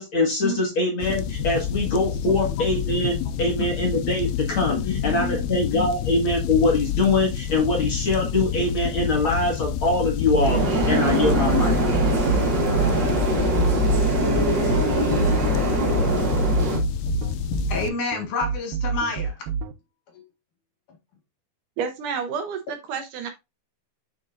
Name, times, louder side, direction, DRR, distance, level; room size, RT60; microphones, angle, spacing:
voice 1, 0.0-11.8, left 2 dB, 45° left, 0 dB, 2.0 m, -23 dB
sound 1, 1.0-17.9, left 9 dB, 85° left, 2.3 m, -28 dB
voice 2, 4.7-5.5 5.7-5.9 12.6-13.7 15.0-15.7 16.0-16.3 17.7-19.3, left 4 dB, 65° left, 3 dB, 3.1 m, -31 dB
sound 2, 10.3-19.7, right 6 dB, 85° right, 2.5 m, -28 dB
sound 3, 10.4-16.8, right 2 dB, 40° right, 1.7 m, -23 dB
voice 3, 21.8-23.3, right 6 dB, 70° right, 6 dB, 2.2 m, -30 dB
7.7 x 6.3 x 2.5 m, 0.24 s
omnidirectional pair, 4.2 m